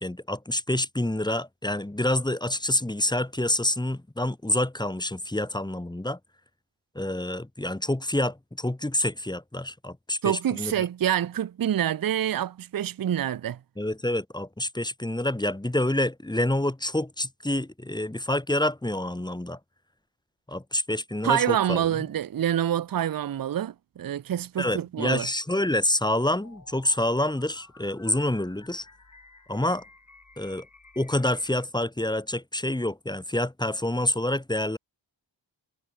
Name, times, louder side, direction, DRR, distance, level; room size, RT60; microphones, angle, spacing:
voice 1, 0.0-6.2 6.9-10.8 13.8-19.6 20.5-22.0 24.6-28.9 29.5-29.8 30.4-30.7 31.0-34.8, left 1 dB, 10° left, 0.9 m, -27 dB
voice 2, 10.2-13.6 21.2-25.3, right 10 dB, 50° right, 0.5 m, -26 dB
sound 1, 26.2-31.7, left 3 dB, 40° left, 3.3 m, -53 dB
wide cardioid pair, 50°, 45 cm